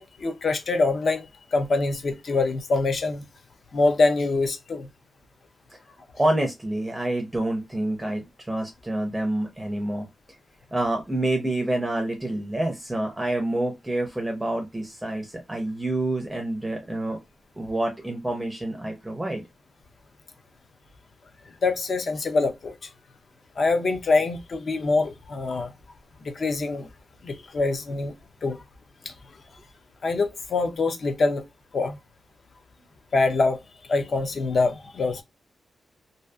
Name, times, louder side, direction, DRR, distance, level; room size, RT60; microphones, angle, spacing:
voice 1, 0.0-3.2 3.7-4.9 21.6-22.8 23.6-25.7 26.2-26.9 27.2-28.1 28.4-28.6 29.0-29.1 30.0-31.4 31.7-32.0 33.1-33.6 33.9-35.2, left 3 dB, 50° left, 0.5 m, -24 dB
voice 2, 6.1-10.1 10.7-17.2 17.6-19.4, right 1 dB, 10° right, 0.5 m, -27 dB
2.5 x 2.3 x 2.2 m
wide cardioid pair, 140°, 0 cm